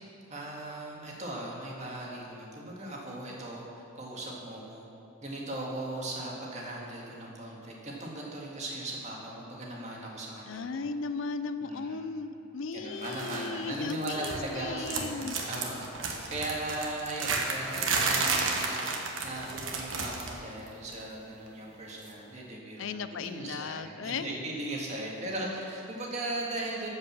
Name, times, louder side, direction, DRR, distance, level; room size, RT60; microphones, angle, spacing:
voice 1, 0.3-3.7 4.0-4.9 5.2-10.8 11.6-12.0 12.7-18.7 19.2-26.9, right 1 dB, 35° right, -3 dB, 1.8 m, -38 dB
voice 2, 10.5-15.4 22.8-24.4 25.2-25.6, left 4 dB, 70° left, 11 dB, 0.5 m, -36 dB
sound 1, 13.0-13.5 13.7-14.6 14.8-20.4 20.7-20.9 22.0-22.1, right 4 dB, 75° right, 1.3 m, -32 dB
13.0 x 5.4 x 7.4 m, 2.8 s
head